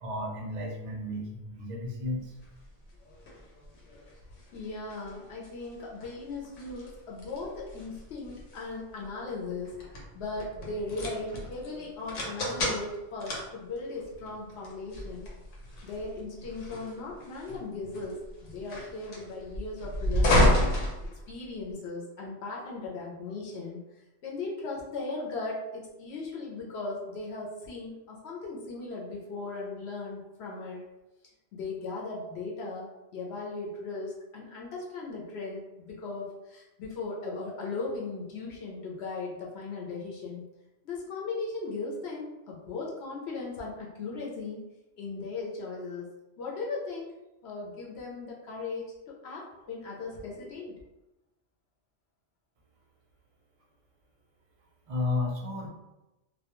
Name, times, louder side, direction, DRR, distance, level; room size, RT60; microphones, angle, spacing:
voice 1, 0.0-2.3 54.9-55.7, left 2 dB, 45° right, -2 dB, 0.4 m, -33 dB
sound 1, 2.4-21.7, left 1 dB, 90° left, 1.0 m, -32 dB
voice 2, 4.5-9.8 10.1-15.3 15.8-20.7 21.3-23.8 24.2-30.8 31.5-40.4 40.8-44.6 45.0-46.1 46.4-47.1 47.4-50.7, left 3 dB, 65° left, -3 dB, 0.8 m, -37 dB
2.3 x 2.1 x 2.9 m, 0.99 s
omnidirectional pair, 1.2 m